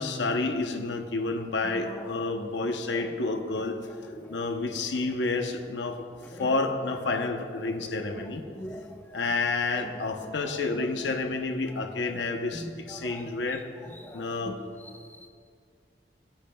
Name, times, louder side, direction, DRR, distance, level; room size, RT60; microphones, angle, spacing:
voice 1, 0.0-3.8 4.0-6.0 6.3-8.4 9.1-13.6 14.1-14.6, left 3 dB, 85° left, 5 dB, 0.9 m, -30 dB
voice 2, 1.7-2.2 2.6-3.1 3.6-3.7 4.0-4.4 6.2-6.6 7.0-8.2 8.5-9.2 9.8-10.1 10.4-10.8 11.7-11.9 12.5-12.6 12.9-13.3 13.8-14.5 14.8-15.3, equal, 10° left, 2 dB, 1.0 m, -44 dB
23.5 x 10.5 x 2.3 m, 2.1 s
head